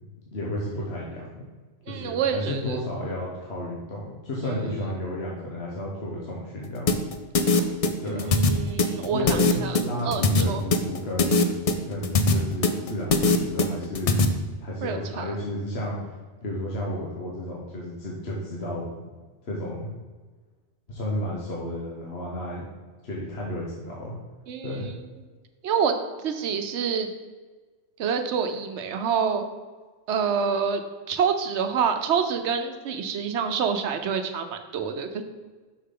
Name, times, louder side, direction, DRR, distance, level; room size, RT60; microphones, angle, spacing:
voice 1, 0.3-1.2 1.9-7.0 8.0-8.3 9.1-9.5 9.8-11.5 11.8-14.2 14.6-16.1 16.4-18.9 19.4-19.9 20.9-22.6 23.0-24.1 24.6-24.9, left 1 dB, 70° left, -4 dB, 1.4 m, -32 dB
voice 2, 1.9-2.8 4.4-4.7 8.1-9.8 10.0-10.6 14.8-15.3 24.5-25.0 25.6-26.0 26.2-27.1 28.0-29.5 30.1-30.8 31.1-35.2, right 6 dB, 85° right, 7 dB, 1.0 m, -27 dB
sound 1, 6.9-14.3, left 3 dB, 45° left, 0.5 m, -21 dB
6.6 x 6.3 x 3.8 m, 1.4 s
omnidirectional pair, 1.1 m